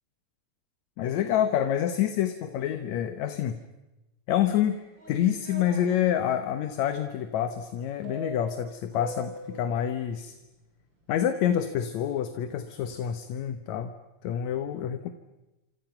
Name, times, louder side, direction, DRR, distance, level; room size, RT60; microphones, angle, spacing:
voice 1, 1.0-3.6 4.3-4.8 5.1-10.4 11.1-13.9 14.2-15.1, left 10 dB, 75° left, 9 dB, 2.3 m, -27 dB
sound 1, 4.6-5.9 8.0-9.7, right 1 dB, 40° right, 5.5 m, -42 dB
27.0 x 27.0 x 5.9 m, 1.0 s
omnidirectional pair, 3.3 m